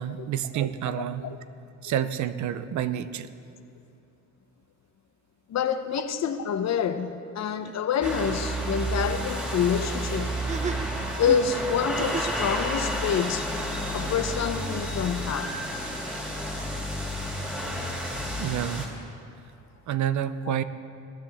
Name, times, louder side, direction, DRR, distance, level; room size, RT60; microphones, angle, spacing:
voice 1, 0.0-1.4 1.8-3.3 18.4-18.9 19.9-20.6, right 10 dB, 70° right, 12 dB, 0.7 m, -29 dB
voice 2, 5.5-10.3 11.2-13.5 13.9-15.5, left 7 dB, 60° left, 10 dB, 0.9 m, -27 dB
sound 1, 7.6-7.7 8.0-8.1 10.3-12.4, right 4 dB, 25° right, 0.7 m, -35 dB
sound 2, 8.0-18.9, equal, 5° right, 2.7 m, -31 dB
22.0 x 10.5 x 3.6 m, 2.7 s
cardioid pair, 90°, 30 cm